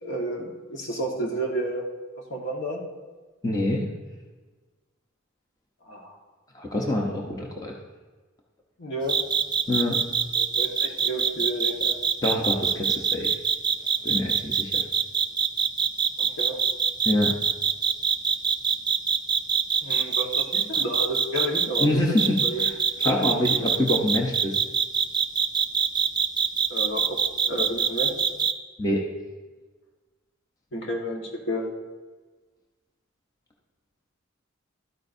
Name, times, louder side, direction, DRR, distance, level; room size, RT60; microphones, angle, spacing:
voice 1, 0.0-1.8 2.3-2.8 5.8-6.2 8.8-9.2 10.3-12.0 16.2-16.6 19.8-22.6 23.0-23.3 23.6-23.7 26.7-27.2 27.5-28.3 30.7-31.7, right 1 dB, 60° left, 0 dB, 1.5 m, -31 dB
voice 2, 3.4-3.9 6.5-7.7 9.7-10.0 12.2-13.3 14.0-14.8 17.0-17.3 21.8-22.7 23.0-24.6 28.8-29.0, left 1 dB, 20° left, -1 dB, 0.8 m, -25 dB
sound 1, 9.1-21.9 22.2-28.5, right 7 dB, 20° right, 0.3 m, -23 dB
12.5 x 9.2 x 2.7 m, 1.3 s
head